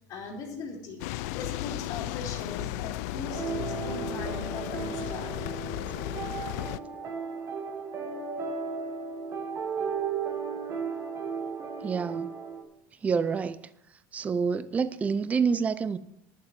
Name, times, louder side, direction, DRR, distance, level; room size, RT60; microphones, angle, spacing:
voice 1, 0.1-1.0 1.3-5.3, left 4 dB, 50° left, 2.5 m, -40 dB
sound 1, 1.0-6.8, left 16 dB, 90° left, 0.4 m, -35 dB
sound 2, 3.2-12.6, right 6 dB, 35° right, 1.6 m, -35 dB
voice 2, 11.8-12.3 13.0-13.6 14.1-16.0, right 5 dB, 15° right, 0.4 m, -27 dB
10.5 x 7.5 x 7.4 m
cardioid pair, 150°, 8 cm